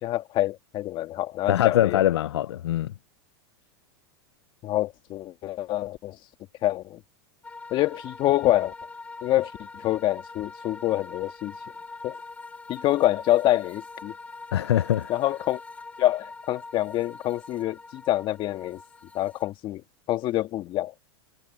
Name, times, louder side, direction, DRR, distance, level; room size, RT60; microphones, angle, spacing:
voice 1, 0.0-2.0 4.6-6.2 6.6-7.0 7.7-8.7 9.2-11.5 12.0-12.2 12.7-14.1 15.1-15.6 16.0-18.8 19.1-19.8 20.1-20.9, left 14 dB, 35° left, 1.9 m, -26 dB
voice 2, 1.5-2.9 14.5-15.1, left 12 dB, 90° left, 0.5 m, -23 dB
sound 1, 7.4-19.5, left 3 dB, 10° left, 2.1 m, -43 dB
supercardioid pair, 130°, 13 cm